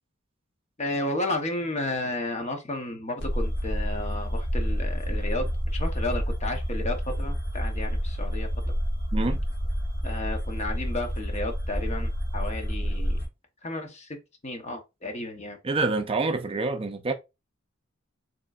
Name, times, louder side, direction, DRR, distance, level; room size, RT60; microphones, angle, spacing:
voice 1, 0.8-8.5 10.0-13.2 13.6-14.2 14.4-15.6, left 2 dB, 35° left, 0.8 m, -33 dB
sound 1, 3.2-13.3, equal, 60° left, 1.2 m, -29 dB
voice 2, 15.6-17.1, right 3 dB, 30° right, 0.4 m, -27 dB
5.0 x 3.0 x 2.4 m
head